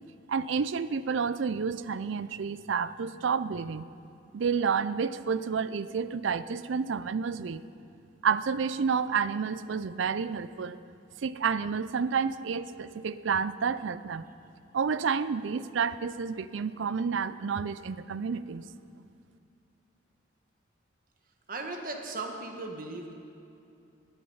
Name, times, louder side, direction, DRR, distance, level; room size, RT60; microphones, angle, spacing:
voice 1, 0.3-3.8 4.3-7.6 8.2-10.8 11.2-14.2 14.7-18.7, right 6 dB, 75° right, 15 dB, 0.4 m, -30 dB
voice 2, 21.5-23.1, right 3 dB, 45° right, 3 dB, 1.5 m, -37 dB
20.0 x 9.9 x 5.6 m, 2.6 s
head